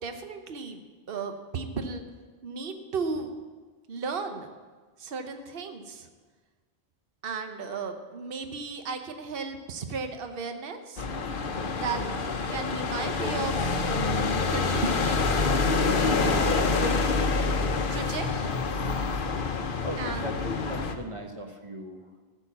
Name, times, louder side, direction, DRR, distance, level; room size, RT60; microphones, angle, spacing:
voice 1, 0.0-2.0 2.4-3.3 3.9-4.5 5.0-6.1 7.2-11.1 11.7-12.0 12.5-13.8 14.5-15.2 16.0-16.9 17.9-18.3 20.0-20.3, right 4 dB, 65° right, 6 dB, 1.1 m, -35 dB
sound 1, 11.0-20.9, left 4 dB, 55° left, 1.1 m, -27 dB
voice 2, 19.7-20.4 20.7-22.2, equal, 30° right, 3 dB, 1.2 m, -38 dB
14.5 x 7.0 x 7.1 m, 1.4 s
omnidirectional pair, 1.0 m